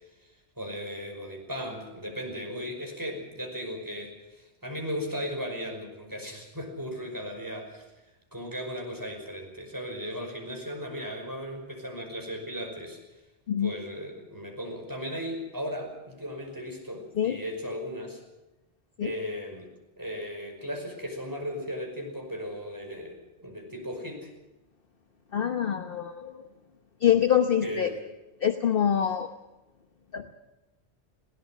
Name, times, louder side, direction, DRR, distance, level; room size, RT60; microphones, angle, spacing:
voice 1, 0.6-7.9 8.3-13.0 13.6-18.2 19.0-24.3 27.6-28.0, equal, 15° right, 1 dB, 5.5 m, -36 dB
voice 2, 25.3-26.5 27.0-27.9 28.4-29.3 30.1-30.3, left 9 dB, 55° left, 7 dB, 1.2 m, -25 dB
21.5 x 17.5 x 7.5 m, 1.0 s
omnidirectional pair, 1.2 m